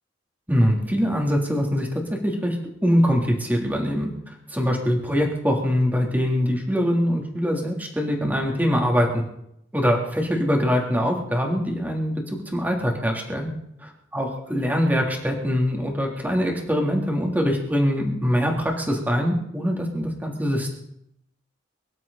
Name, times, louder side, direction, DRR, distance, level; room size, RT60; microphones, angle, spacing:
voice 1, 0.5-2.5 2.8-4.1 4.5-9.2 9.7-12.2 12.5-13.5 14.1-20.8, equal, 10° right, 0 dB, 3.3 m, -23 dB
24.0 x 12.0 x 4.2 m, 0.75 s
head